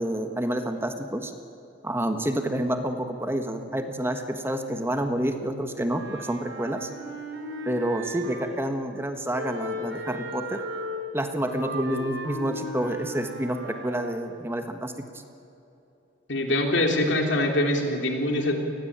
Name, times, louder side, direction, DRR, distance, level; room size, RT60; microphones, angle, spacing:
voice 1, 0.0-1.3 1.8-6.9 7.6-10.6 11.1-15.0, right 1 dB, 15° right, 7 dB, 1.5 m, -28 dB
Wind instrument woodwind instrument, 5.9-8.8 9.3-14.2, equal, 75° right, 4.8 m, -36 dB
voice 2, 16.3-18.6, left 1 dB, 75° left, 3 dB, 3.5 m, -24 dB
28.5 x 19.5 x 8.9 m, 2.9 s
head